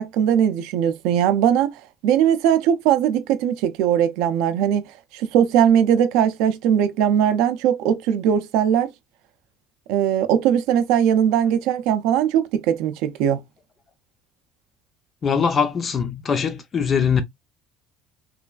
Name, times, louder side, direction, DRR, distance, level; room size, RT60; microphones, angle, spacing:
voice 1, 0.0-8.9 9.9-13.4, right 9 dB, 75° right, 0.4 m, -20 dB
voice 2, 15.2-17.2, left 6 dB, 25° left, 0.3 m, -21 dB
3.0 x 2.3 x 2.3 m
cardioid pair, 175°, 0 cm